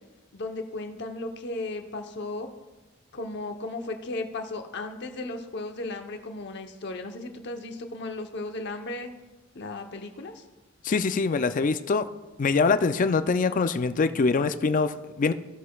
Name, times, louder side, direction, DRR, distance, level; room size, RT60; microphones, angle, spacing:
voice 1, 0.3-2.5 3.1-9.1 9.5-10.4, left 2 dB, 60° left, 5 dB, 0.9 m, -35 dB
voice 2, 10.8-12.1 12.4-15.3, left 4 dB, 40° left, 11 dB, 0.4 m, -24 dB
16.0 x 6.5 x 2.3 m, 1.1 s
head